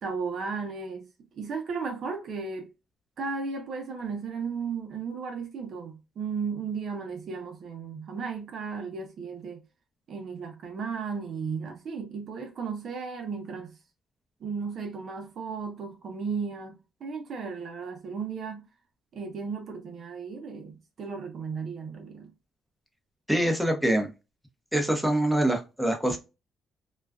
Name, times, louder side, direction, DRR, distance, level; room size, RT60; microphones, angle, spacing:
voice 1, 0.0-1.1 1.4-2.7 3.2-9.6 10.1-13.8 14.4-18.7 19.1-22.3, right 5 dB, 60° right, 0.7 m, -35 dB
voice 2, 23.3-24.1 24.7-26.2, right 1 dB, ahead, 0.8 m, -24 dB
2.4 x 2.3 x 2.3 m
cardioid pair, 90°, 0 cm